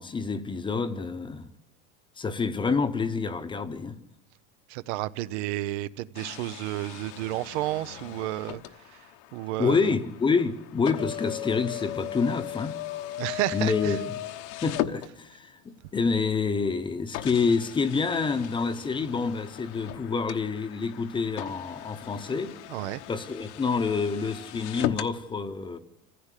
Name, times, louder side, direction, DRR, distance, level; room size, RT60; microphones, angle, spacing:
voice 1, 0.0-1.5 2.2-4.0 9.6-12.8 13.5-14.0 14.6-22.5 23.1-25.8, left 5 dB, 15° left, 0.8 m, -27 dB
voice 2, 4.7-9.9 13.2-14.0 22.7-23.0, right 15 dB, 90° right, 0.9 m, -32 dB
sound 1, 6.1-15.6 16.3-16.4 17.1-25.2, left 14 dB, 70° left, 1.2 m, -38 dB
25.5 x 15.5 x 8.3 m
cardioid pair, 165°, 35 cm